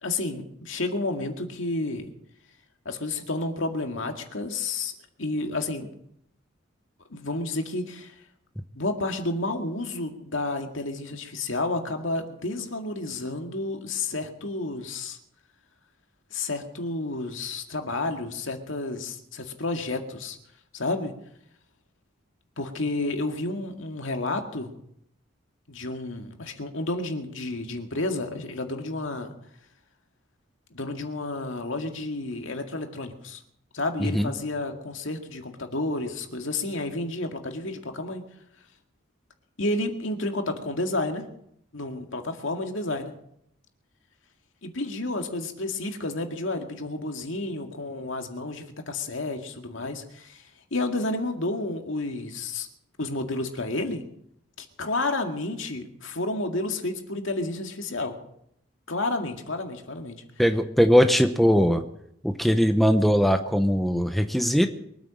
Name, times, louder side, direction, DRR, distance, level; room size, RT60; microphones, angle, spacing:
voice 1, 0.0-2.1 2.9-4.9 5.2-5.9 7.1-8.2 8.8-15.2 16.3-20.4 20.7-21.1 22.6-24.7 25.7-29.3 30.7-33.4 33.7-38.2 39.6-41.2 41.7-43.1 44.6-52.7 53.0-54.0 54.6-58.2 58.9-60.2, left 2 dB, 75° left, 5 dB, 2.1 m, -31 dB
voice 2, 34.0-34.3 60.4-61.8 62.2-64.7, equal, ahead, 7 dB, 0.8 m, -20 dB
23.5 x 9.2 x 6.4 m, 0.73 s
head